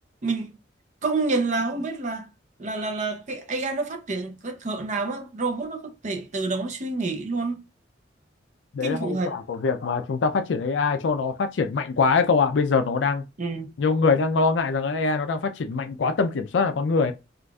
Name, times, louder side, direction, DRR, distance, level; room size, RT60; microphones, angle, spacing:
voice 1, 0.2-0.5 1.0-2.3 2.6-7.6 8.8-9.4 13.4-13.7, right 3 dB, 40° right, 0.6 m, -28 dB
voice 2, 8.7-13.2 13.8-17.1, left 4 dB, 75° left, 0.4 m, -23 dB
3.8 x 2.4 x 2.3 m
head